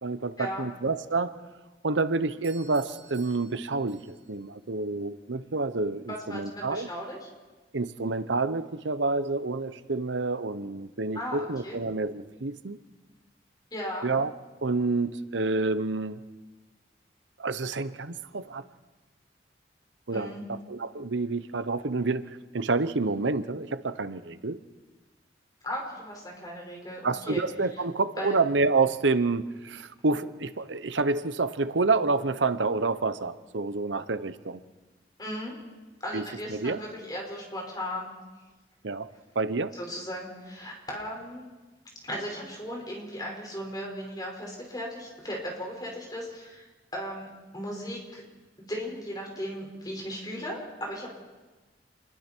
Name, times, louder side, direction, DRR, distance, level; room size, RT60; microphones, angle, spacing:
voice 1, 0.0-1.3 1.8-4.0 4.3-6.9 7.7-12.8 14.0-14.3 14.6-16.2 17.4-18.6 20.1-24.6 27.0-34.6 36.1-36.2 36.5-36.8 38.8-39.1 39.3-39.7, right 3 dB, 85° right, 13 dB, 0.9 m, -28 dB
Doorbell, 2.4-4.4, right 5 dB, 35° right, 6.0 m, -53 dB
voice 2, 6.1-7.2 11.1-11.8 13.7-14.1 20.1-20.4 25.6-27.4 28.2-28.4 35.2-35.6 36.0-38.1 39.7-41.4 42.0-46.6 46.9-47.3 47.5-48.2 48.7-51.1, equal, 20° left, -1 dB, 5.5 m, -36 dB
28.5 x 21.5 x 4.6 m, 1.2 s
head